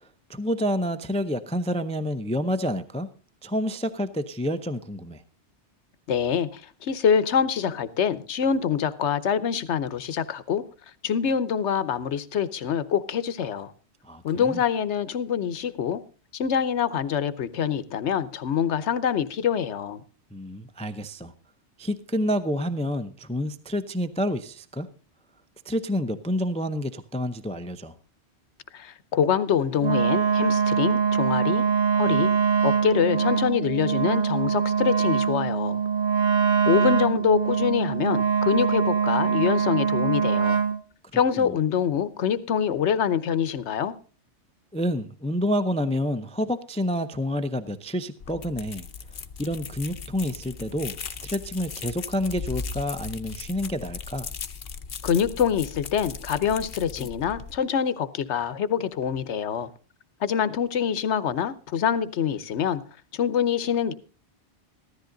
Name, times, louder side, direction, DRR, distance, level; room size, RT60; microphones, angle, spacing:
voice 1, 0.3-3.1 3.4-5.2 14.0-14.6 20.3-21.3 21.8-24.9 25.7-27.9 41.4-41.5 44.7-48.9 49.4-51.0 51.2-54.3 57.0-57.1, equal, 10° left, 0.4 m, -28 dB
voice 2, 6.1-10.6 11.0-13.7 14.2-16.0 16.3-20.0 28.7-31.6 31.9-32.3 32.6-35.8 36.7-40.6 41.1-43.9 55.0-59.7 60.2-62.8 63.1-63.9, left 7 dB, 80° left, 1.1 m, -25 dB
Wind instrument woodwind instrument, 29.8-40.8, right 6 dB, 45° right, 1.1 m, -23 dB
sound 1, 48.2-57.6, left 6 dB, 55° left, 0.9 m, -38 dB
15.0 x 13.0 x 3.8 m
omnidirectional pair, 1.2 m